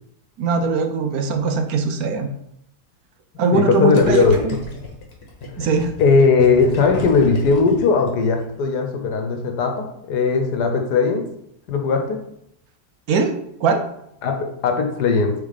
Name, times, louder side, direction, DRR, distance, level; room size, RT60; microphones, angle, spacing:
voice 1, 0.4-2.3 3.4-4.6 5.6-5.9 13.1-13.3 13.6-13.8, right 4 dB, 70° right, 5 dB, 1.2 m, -20 dB
voice 2, 3.5-4.6 6.0-11.2 11.7-12.2 14.2-15.3, left 4 dB, 80° left, 4 dB, 1.5 m, -18 dB
Gurgling, 4.0-8.6, left 2 dB, 40° left, 1.5 m, -33 dB
6.5 x 4.2 x 4.1 m, 0.76 s
omnidirectional pair, 1.7 m